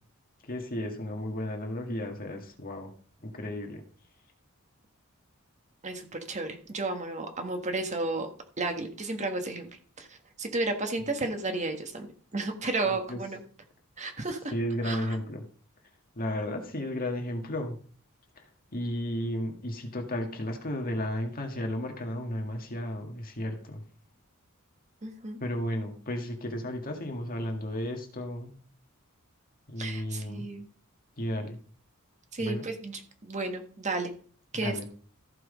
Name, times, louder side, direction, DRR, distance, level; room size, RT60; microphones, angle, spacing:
voice 1, 0.5-2.9 3.2-3.8 13.1-13.2 14.5-15.4 16.2-17.8 18.7-23.8 25.4-28.5 29.7-30.4 31.2-31.6 32.4-32.7 34.6-34.8, left 1 dB, 40° left, 4 dB, 1.9 m, -33 dB
voice 2, 5.8-8.3 8.6-9.7 10.0-12.1 12.3-13.4 14.0-14.5 14.8-15.2 25.0-25.4 29.8-30.7 32.3-34.1 34.5-34.8, right 2 dB, 35° right, 6 dB, 1.5 m, -33 dB
14.5 x 6.1 x 5.1 m, 0.43 s
head